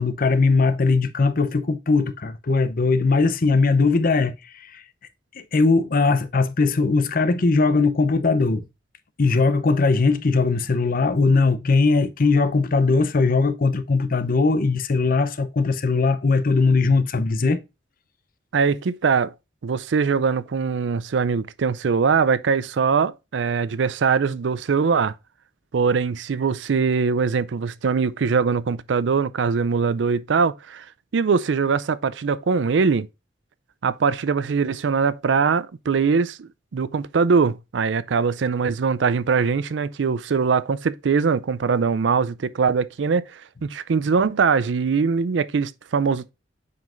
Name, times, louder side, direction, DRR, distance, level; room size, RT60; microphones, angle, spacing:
voice 1, 0.0-4.8 5.4-8.7 9.2-17.6, left 3 dB, 50° left, 0.7 m, -20 dB
voice 2, 18.5-19.3 19.6-25.1 25.7-30.8 31.1-33.1 33.8-46.3, right 5 dB, 80° right, 0.4 m, -22 dB
7.6 x 5.6 x 2.5 m
head